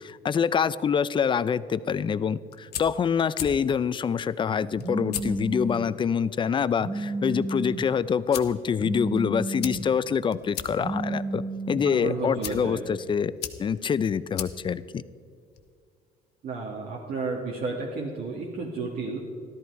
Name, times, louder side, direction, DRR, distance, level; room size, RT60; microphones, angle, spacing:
voice 1, 0.0-13.3 13.6-15.0, left 7 dB, 30° left, 16 dB, 0.4 m, -26 dB
sound 1, 2.3-15.7, left 10 dB, 75° left, 1.0 m, -41 dB
Telephone, 4.8-5.8 6.8-7.8 8.8-9.8 10.8-11.8, right 2 dB, 35° right, 1.2 m, -31 dB
voice 2, 11.8-12.8 16.4-19.2, right 3 dB, 65° right, -3 dB, 1.9 m, -32 dB
14.0 x 12.5 x 4.7 m, 2.3 s
cardioid pair, 110°, 17 cm